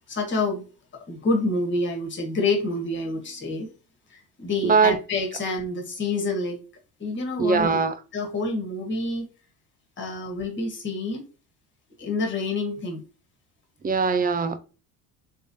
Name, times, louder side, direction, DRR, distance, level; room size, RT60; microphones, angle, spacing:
voice 1, 0.1-0.6 1.1-3.7 4.1-6.6 7.0-7.8 8.1-9.3 10.0-11.2 12.0-13.0, left 2 dB, 30° left, 1.4 m, -27 dB
voice 2, 7.4-7.9 13.8-14.6, right 5 dB, 25° right, 0.5 m, -21 dB
3.4 x 3.3 x 2.6 m
supercardioid pair, 95°, 38 cm